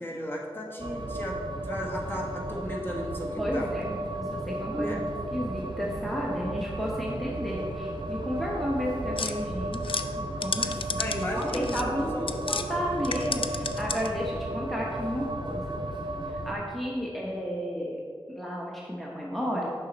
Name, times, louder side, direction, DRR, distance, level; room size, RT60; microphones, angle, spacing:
voice 1, 0.0-3.7 4.7-5.0 11.0-12.4, equal, 20° left, -2 dB, 1.3 m, -35 dB
sound 1, 0.8-16.5, right 1 dB, 50° right, 0.7 m, -34 dB
voice 2, 3.4-5.1 5.3-9.8 10.2-11.0 11.3-15.6 16.3-18.0 18.3-19.7, equal, ahead, -4 dB, 0.9 m, -32 dB
sound 2, 9.2-12.7 13.0-14.2, left 5 dB, 65° left, 0.4 m, -33 dB
6.2 x 5.9 x 4.1 m, 2.2 s
wide cardioid pair, 55°, 10 cm